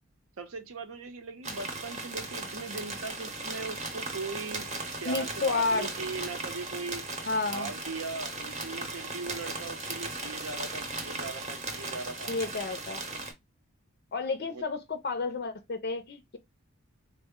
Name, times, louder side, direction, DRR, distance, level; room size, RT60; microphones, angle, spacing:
voice 1, 0.4-7.0 7.4-12.3 14.5-14.6, right 3 dB, 80° right, 0.7 m, -39 dB
sound 1, 1.4-13.3, right 2 dB, 30° right, 0.7 m, -37 dB
voice 2, 5.1-5.9 7.3-7.7 12.3-13.0 14.1-16.4, left 3 dB, 50° left, 0.4 m, -31 dB
3.6 x 2.1 x 3.5 m
head